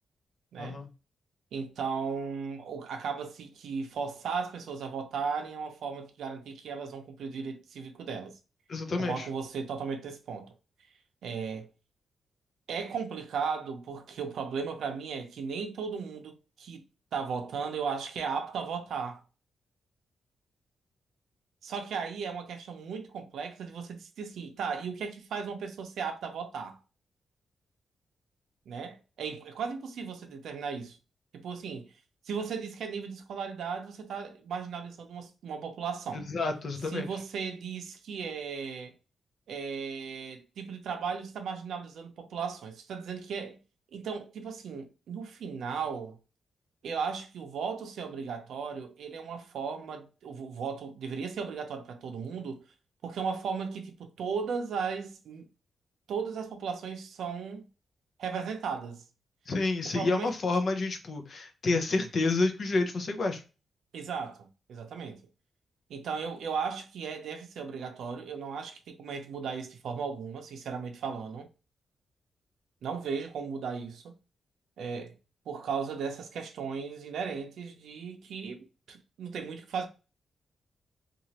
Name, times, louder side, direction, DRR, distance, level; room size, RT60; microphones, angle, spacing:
voice 1, 0.6-0.9 8.7-9.3 36.1-37.1 59.5-63.4, left 3 dB, 45° left, 0.6 m, -29 dB
voice 2, 1.5-8.3 9.0-10.5 11.2-11.7 12.7-16.8 17.1-19.2 21.6-26.8 28.7-31.0 31.3-31.9 32.3-36.3 36.9-38.9 39.5-43.6 43.9-46.2 46.8-52.6 53.0-55.5 56.1-57.6 58.2-59.0 59.8-60.3 63.9-65.2 65.9-71.5 72.8-74.2 74.8-75.1 75.5-79.9, right 6 dB, 80° right, 0.6 m, -36 dB
3.0 x 2.4 x 2.8 m
wide cardioid pair, 165°, 0 cm